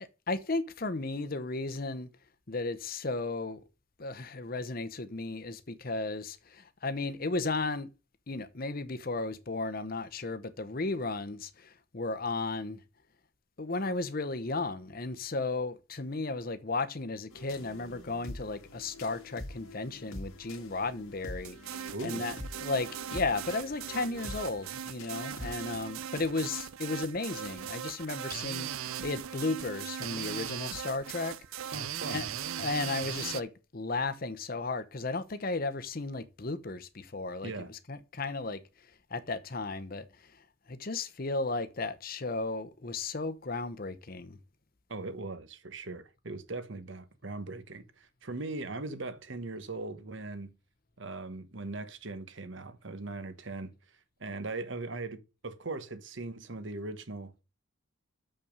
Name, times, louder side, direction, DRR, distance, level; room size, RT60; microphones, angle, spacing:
voice 1, 0.3-2.1 2.5-3.6 4.0-7.9 8.3-12.8 13.6-31.8 32.1-32.3 32.6-38.6 39.1-40.1 40.7-44.4, left 3 dB, 45° left, 0.8 m, -34 dB
sound 1, 17.3-25.8, left 1 dB, 90° left, 1.9 m, -46 dB
sound 2, 21.4-33.4, right 9 dB, 80° right, 0.6 m, -39 dB
voice 2, 21.9-22.3 31.7-32.2 37.4-37.7 44.9-50.5 51.0-53.7 54.2-57.3, right 3 dB, 60° right, 1.1 m, -39 dB
7.0 x 5.6 x 5.1 m
head